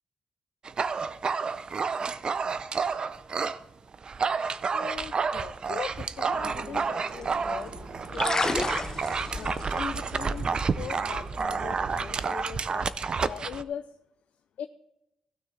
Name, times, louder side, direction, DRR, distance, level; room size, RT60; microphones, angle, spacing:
Dog, 0.6-3.6 3.9-13.6, right 5 dB, 40° right, 0.4 m, -30 dB
voice 1, 4.7-7.7 8.1-8.5 9.3-14.0 14.6-14.7, left 8 dB, 90° left, 9 dB, 0.4 m, -40 dB
sound 1, 6.3-12.4, right 4 dB, 55° right, 0.9 m, -45 dB
sound 2, 7.1-12.1, left 3 dB, 25° left, 0.7 m, -34 dB
16.0 x 6.3 x 3.8 m, 0.86 s
wide cardioid pair, 140°, 2 cm